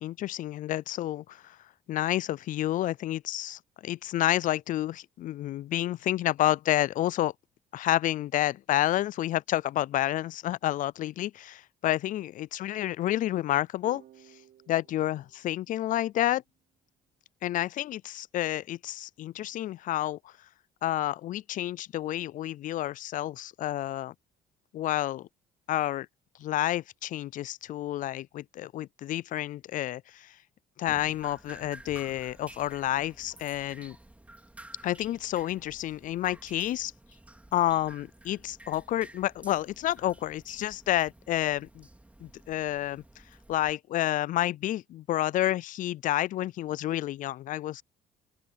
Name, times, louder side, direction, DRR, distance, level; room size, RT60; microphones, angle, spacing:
voice 1, 0.0-1.6 1.9-7.3 7.7-14.0 14.7-16.4 17.4-20.3 20.8-24.1 24.7-25.3 25.7-26.1 26.4-30.3 30.8-34.0 34.8-36.9 37.5-41.9 42.2-43.0 43.5-47.8, left 13 dB, 50° left, 0.4 m, -29 dB
sound 1, 13.8-16.6, right 11 dB, 65° right, 6.0 m, -57 dB
Drip, 30.9-43.7, right 1 dB, 10° right, 3.3 m, -52 dB
open air
cardioid pair, 110°, 17 cm